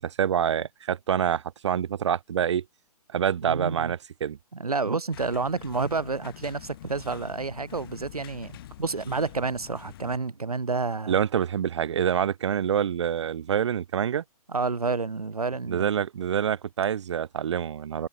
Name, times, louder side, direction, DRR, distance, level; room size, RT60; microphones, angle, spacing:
voice 1, 0.0-2.6 3.1-4.4 11.1-14.2 15.7-18.1, right 8 dB, 45° right, 0.8 m, -26 dB
voice 2, 3.5-3.9 4.5-11.1 14.5-15.9, right 4 dB, 70° right, 2.8 m, -29 dB
sound 1, 5.1-10.2, left 13 dB, 35° left, 6.4 m, -46 dB
figure-of-eight pair, 130°, 20 cm